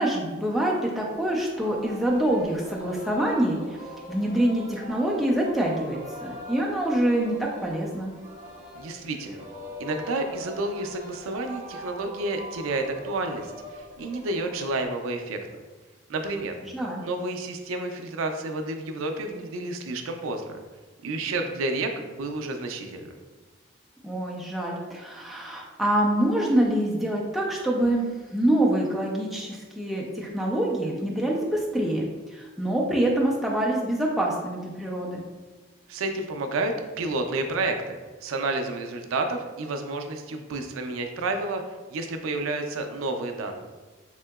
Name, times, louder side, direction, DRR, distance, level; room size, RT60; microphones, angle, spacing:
voice 1, 0.0-3.8 4.1-8.1 16.6-17.0 24.0-35.2, right 1 dB, ahead, -4 dB, 0.4 m, -25 dB
Singing, 1.1-14.8, equal, 35° right, 0.6 m, -42 dB
voice 2, 8.8-9.4 9.8-15.4 16.1-16.6 17.0-20.6 21.0-23.2 35.9-43.6, right 2 dB, 80° right, 5 dB, 0.4 m, -30 dB
3.6 x 2.7 x 2.2 m, 1.3 s
head